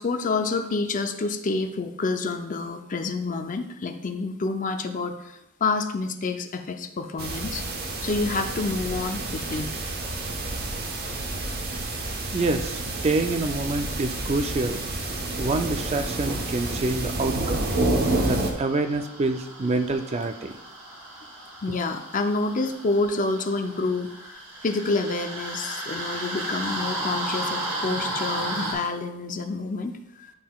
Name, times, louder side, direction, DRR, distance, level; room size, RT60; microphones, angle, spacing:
voice 1, 0.0-7.6 8.0-9.7 21.6-30.3, left 3 dB, 35° left, 7 dB, 0.5 m, -28 dB
sound 1, 7.2-18.5, right 2 dB, 45° right, 0.9 m, -29 dB
voice 2, 12.3-14.8 15.4-17.6 18.2-20.6, right 2 dB, 30° right, 8 dB, 0.4 m, -27 dB
sound 2, 18.0-28.7, right 1 dB, 75° right, 2.7 m, -34 dB
10.5 x 5.6 x 2.3 m, 0.87 s
head